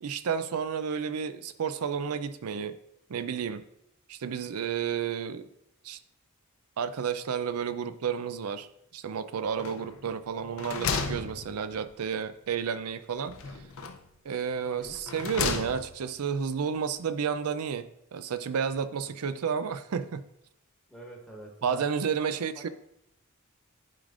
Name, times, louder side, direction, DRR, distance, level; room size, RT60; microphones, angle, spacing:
voice 1, 0.0-2.8 3.1-3.6 4.1-5.5 5.8-6.0 6.8-8.7 8.9-13.4 14.2-20.2 21.6-22.7, right 7 dB, 90° right, 13 dB, 0.5 m, -31 dB
sound 1, 9.6-10.1 10.4-12.0 13.3-14.1 14.8-16.1, left 5 dB, 65° left, 0.6 m, -34 dB
voice 2, 14.6-15.0 20.9-21.9 22.2-22.3, right 1 dB, ahead, -2 dB, 1.3 m, -45 dB
10.5 x 4.9 x 2.5 m, 0.76 s
head